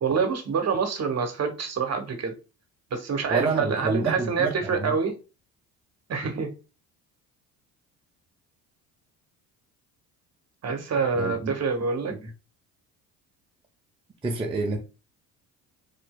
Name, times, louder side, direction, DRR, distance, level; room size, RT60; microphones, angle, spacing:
voice 1, 0.0-2.3 2.9-5.1 6.1-6.5 10.6-12.2, right 5 dB, 40° right, 0.9 m, -26 dB
voice 2, 3.3-4.9 11.2-11.5 14.2-14.8, right 3 dB, 15° right, 0.5 m, -28 dB
4.3 x 2.6 x 2.2 m
hypercardioid pair, 65°, 41 cm